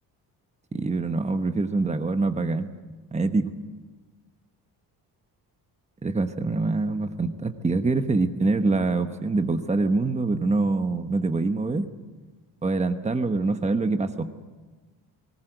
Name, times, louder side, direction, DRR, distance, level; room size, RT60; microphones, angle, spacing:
voice 1, 0.7-2.7 3.1-3.5 6.0-11.9 12.6-14.3, right 3 dB, 15° right, 8 dB, 1.1 m, -25 dB
20.5 x 18.5 x 8.0 m, 1.3 s
cardioid pair, 115°, 41 cm